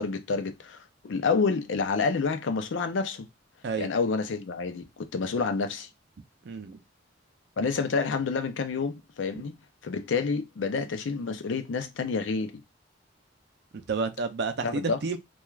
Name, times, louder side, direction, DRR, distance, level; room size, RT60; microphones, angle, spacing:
voice 1, 0.0-3.3 3.8-5.9 7.6-9.5 9.8-12.5 14.6-15.0, left 4 dB, 85° left, 0.5 m, -28 dB
voice 2, 6.4-6.8 13.9-15.2, right 4 dB, 65° right, 0.4 m, -30 dB
3.1 x 2.3 x 2.3 m
head